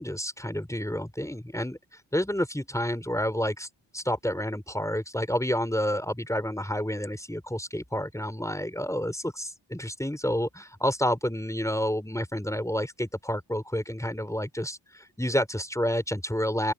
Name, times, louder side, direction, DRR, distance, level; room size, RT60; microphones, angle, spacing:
voice 1, 0.0-1.8 2.1-3.7 3.9-16.7, equal, 5° left, 4.9 m, -29 dB
open air
supercardioid pair, 40°, 47 cm